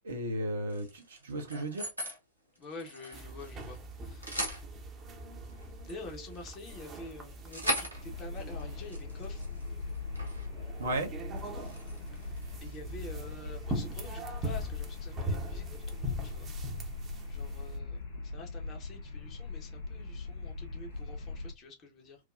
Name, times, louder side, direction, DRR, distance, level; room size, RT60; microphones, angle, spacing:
voice 1, 0.0-1.9 10.8-11.1, right 1 dB, 65° right, 1.0 m, -34 dB
sound 1, 0.7-2.2 2.6-3.8 4.0-4.6 5.5-10.5 10.8-11.0 11.4-12.9, equal, 85° left, 1.2 m, -40 dB
voice 2, 2.6-4.4 5.5-9.4 12.2-16.5 17.3-18.0 18.2-22.2, left 3 dB, 35° left, 1.1 m, -48 dB
sound 2, 3.1-17.8, right 1 dB, 25° right, 0.9 m, -41 dB
sound 3, 7.9-21.5, left 3 dB, 60° left, 1.0 m, -41 dB
4.7 x 2.3 x 2.5 m
figure-of-eight pair, 90°, 0 cm